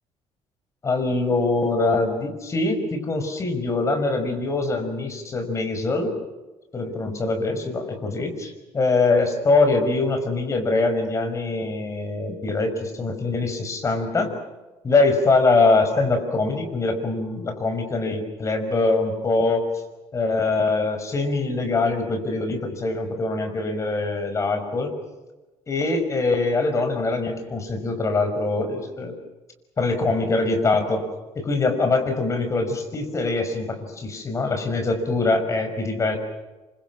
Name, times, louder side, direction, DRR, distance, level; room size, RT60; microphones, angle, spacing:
voice 1, 0.8-6.1 6.7-14.3 14.8-19.7 20.1-24.9 25.7-29.2 29.8-31.1 31.4-36.2, left 3 dB, 25° left, 6 dB, 5.6 m, -23 dB
29.0 x 26.0 x 6.3 m, 1.1 s
cardioid pair, 150°, 12 cm